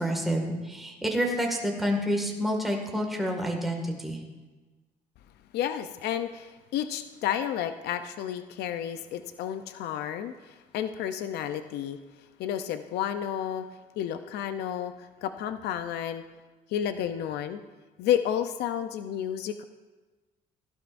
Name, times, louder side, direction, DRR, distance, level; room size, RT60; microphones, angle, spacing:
voice 1, 0.0-4.2, equal, ahead, 0 dB, 1.9 m, -28 dB
voice 2, 5.5-12.0 12.4-13.7 14.0-16.2 16.7-17.6 18.0-19.6, left 10 dB, 75° left, 10 dB, 0.6 m, -31 dB
15.5 x 11.5 x 2.6 m, 1.2 s
cardioid pair, 110°, 17 cm